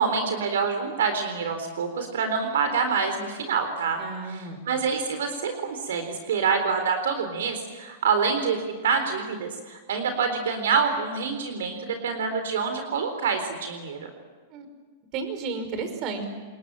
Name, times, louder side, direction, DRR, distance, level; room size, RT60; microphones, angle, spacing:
voice 1, 0.0-4.0 4.3-14.1, right 5 dB, 80° right, 6 dB, 3.9 m, -26 dB
voice 2, 4.0-4.6 14.5-14.7 15.1-16.2, right 4 dB, 45° right, 8 dB, 5.4 m, -32 dB
28.0 x 21.5 x 9.0 m, 1.4 s
hypercardioid pair, 115°, 0 cm